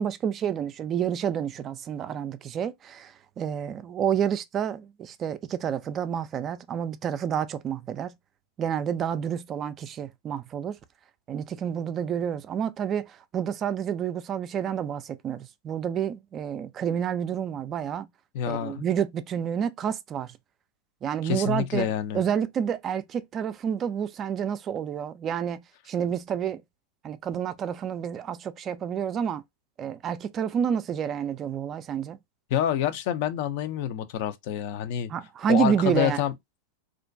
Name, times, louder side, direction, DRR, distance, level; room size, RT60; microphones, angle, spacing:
voice 1, 0.0-8.1 8.6-10.8 11.3-18.1 18.5-20.4 21.0-21.9 22.1-26.6 27.0-29.4 29.8-32.2 35.1-36.2, right 8 dB, 35° right, 0.3 m, -29 dB
voice 2, 18.3-18.8 21.2-22.2 32.5-35.1 35.5-36.3, left 10 dB, 60° left, 0.4 m, -27 dB
2.4 x 2.1 x 2.5 m
hypercardioid pair, 110°, 0 cm